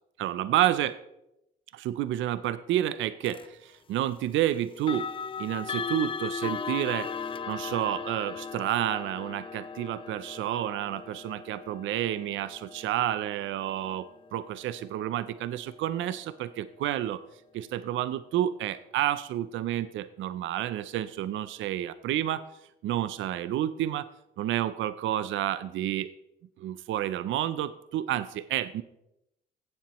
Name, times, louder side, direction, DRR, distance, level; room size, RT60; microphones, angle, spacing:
voice 1, 0.2-0.9 1.7-5.1 5.4-7.1 7.5-14.1 14.3-17.2 17.5-22.4 22.8-24.1 24.4-26.1 26.6-28.8, right 12 dB, 75° right, 14 dB, 0.5 m, -30 dB
sound 1, 3.2-3.5 4.8-15.6, left 5 dB, 25° left, 0.4 m, -38 dB
15.5 x 7.5 x 3.0 m, 0.86 s
cardioid pair, 90°, 20 cm